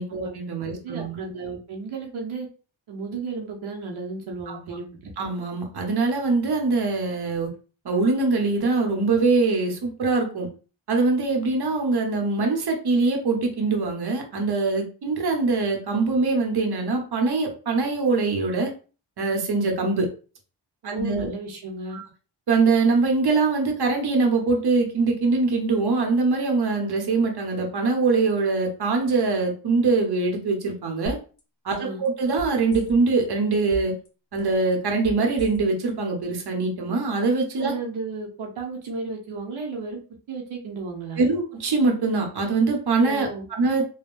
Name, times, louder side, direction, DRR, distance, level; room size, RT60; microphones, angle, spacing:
voice 1, 0.0-1.2 4.5-4.6 5.2-7.5 7.8-10.5 10.9-18.7 19.2-20.1 20.8-21.3 21.9-22.0 22.5-31.2 31.6-33.9 34.3-37.8 41.2-43.9, right 3 dB, 55° right, 2 dB, 1.0 m, -23 dB
voice 2, 0.7-2.5 2.9-5.1 20.8-22.0 31.7-32.0 37.6-40.0 40.3-41.2 43.0-43.5, right 3 dB, 80° right, 0 dB, 0.9 m, -34 dB
sound 1, 31.1-31.4 31.7-33.2 33.6-34.1 34.4-35.9 36.2-36.3, equal, 40° left, 1.2 m, -37 dB
3.6 x 2.3 x 2.4 m, 0.36 s
cardioid pair, 70°, 47 cm